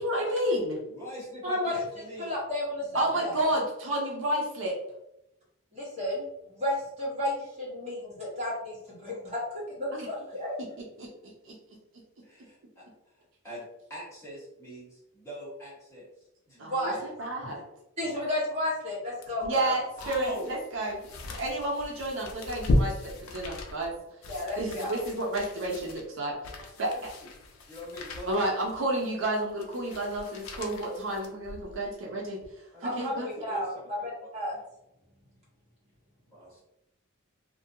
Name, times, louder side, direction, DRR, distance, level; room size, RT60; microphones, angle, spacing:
voice 1, 0.0-0.8 2.9-4.8 9.9-10.1 11.0-11.1 11.4-11.6 16.6-17.6 19.4-23.9 24.6-26.4 26.8-27.1 28.3-32.4 32.8-33.3, right 1 dB, 60° right, -1 dB, 0.5 m, -31 dB
voice 2, 0.9-2.3 12.2-13.6 13.9-16.6 20.0-20.5 21.2-21.4 26.6-26.8 27.2-27.3 27.6-28.6 32.7-34.1 34.5-34.6 36.2-36.6, equal, 15° left, -9 dB, 1.2 m, -44 dB
voice 3, 1.4-1.8 2.2-3.5 5.7-10.7 16.5-17.0 18.0-19.7 24.3-25.0 32.8-33.7 34.0-34.6, left 1 dB, 30° right, -7 dB, 1.1 m, -33 dB
sound 1, 19.2-31.9 32.3-32.5, left 1 dB, 70° left, 0.4 m, -36 dB
2.5 x 2.1 x 2.6 m, 0.85 s
head